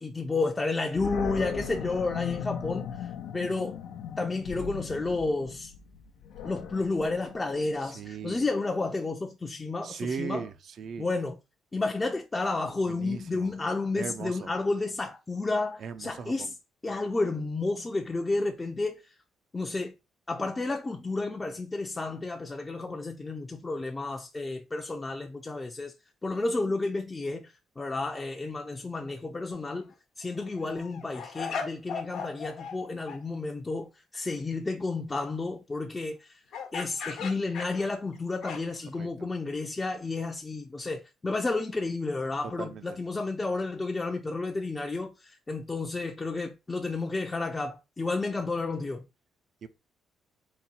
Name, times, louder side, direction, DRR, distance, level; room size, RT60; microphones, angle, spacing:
voice 1, 0.0-3.8 4.2-5.7 6.4-10.5 11.0-11.4 11.7-16.5 16.8-19.0 19.5-19.9 20.3-25.9 26.2-36.4 36.7-49.0, left 3 dB, 20° left, 0.5 m, -31 dB
Animal, 0.9-8.1, left 7 dB, 90° left, 0.6 m, -38 dB
voice 2, 7.8-8.5 9.8-11.1 12.9-13.5 13.9-14.5 15.8-16.5 39.0-39.3 42.4-43.0 49.6-49.7, right 6 dB, 60° right, 0.5 m, -38 dB
sound 1, 29.5-29.8 30.2-32.8 33.1-33.2 36.5-38.9, left 5 dB, 70° left, 1.0 m, -38 dB
4.1 x 2.2 x 4.1 m
cardioid pair, 90°, 0 cm